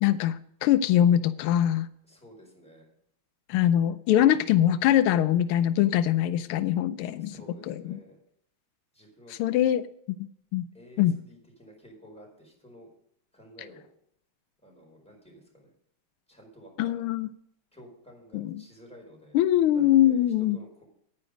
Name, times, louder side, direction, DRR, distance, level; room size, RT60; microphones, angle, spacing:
voice 1, 0.0-1.9 3.5-7.3 7.7-8.0 9.4-9.8 10.1-10.2 10.5-10.6 11.0-11.1 16.8-17.3 18.3-18.6 19.3-20.6, left 11 dB, 90° left, 13 dB, 1.5 m, -23 dB
voice 2, 2.0-2.9 7.2-8.2 8.9-9.6 10.7-12.9 13.3-13.9 14.6-15.7 16.3-17.1 17.7-19.4 19.7-20.9, equal, 5° left, -1 dB, 4.5 m, -51 dB
10.0 x 9.7 x 5.1 m, 0.71 s
omnidirectional pair, 2.3 m